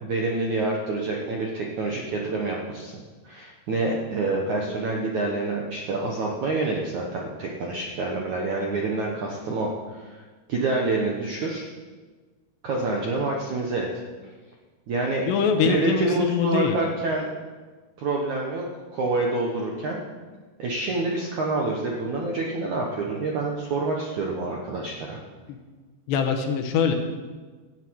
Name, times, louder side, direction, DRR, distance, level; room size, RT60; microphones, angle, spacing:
voice 1, 0.0-10.2 10.5-11.7 12.6-13.9 14.9-15.3 15.6-17.3 18.0-20.0 20.6-25.2, right 2 dB, 65° right, -1 dB, 1.8 m, -27 dB
voice 2, 15.3-16.8 25.5-25.6 26.1-26.9, left 6 dB, 75° left, 4 dB, 3.1 m, -23 dB
18.0 x 12.5 x 4.8 m, 1.4 s
omnidirectional pair, 5.4 m